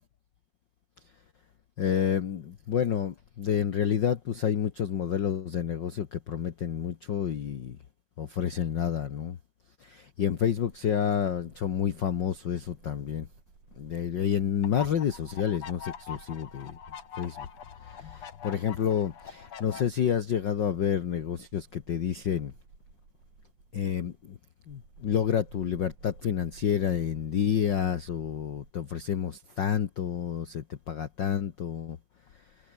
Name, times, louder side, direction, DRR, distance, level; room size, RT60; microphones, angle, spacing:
voice 1, 1.8-7.8 8.2-9.4 9.8-13.3 13.8-16.8 17.2-17.5 17.8-22.5 23.7-24.4 24.7-32.0, left 8 dB, 85° left, 1.0 m, -29 dB
sound 1, 10.5-28.7, right 4 dB, 60° right, 7.4 m, -56 dB
sound 2, 14.6-19.8, left 8 dB, 50° left, 3.0 m, -43 dB
omnidirectional pair, 3.9 m